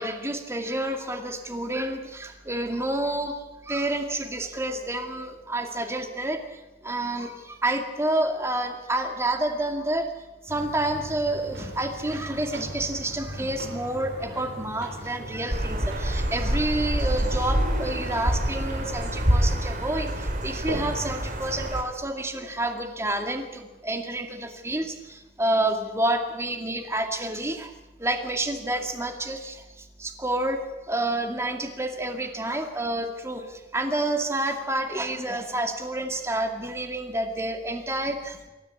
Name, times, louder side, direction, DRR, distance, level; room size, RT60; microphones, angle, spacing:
voice 1, 0.0-10.1 10.4-27.7 28.0-38.5, right 1 dB, 15° right, 5 dB, 2.3 m, -29 dB
sound 1, 10.5-21.7, equal, 80° right, 4.4 m, -38 dB
sound 2, 15.5-21.8, equal, 45° right, 3.3 m, -26 dB
27.0 x 14.5 x 8.5 m, 1.1 s
head